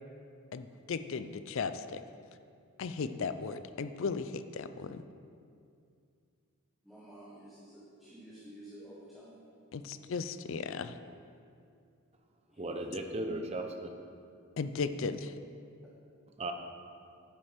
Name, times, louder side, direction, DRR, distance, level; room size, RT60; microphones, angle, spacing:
voice 1, 0.5-2.0 2.8-5.0 9.7-11.0 14.6-15.3, left 5 dB, 60° left, 11 dB, 0.4 m, -36 dB
voice 2, 6.8-9.5 12.5-13.0, right 1 dB, ahead, -7 dB, 1.1 m, -52 dB
voice 3, 12.6-13.9 16.4-16.5, right 2 dB, 30° right, 4 dB, 0.7 m, -36 dB
8.8 x 7.3 x 5.1 m, 2.4 s
head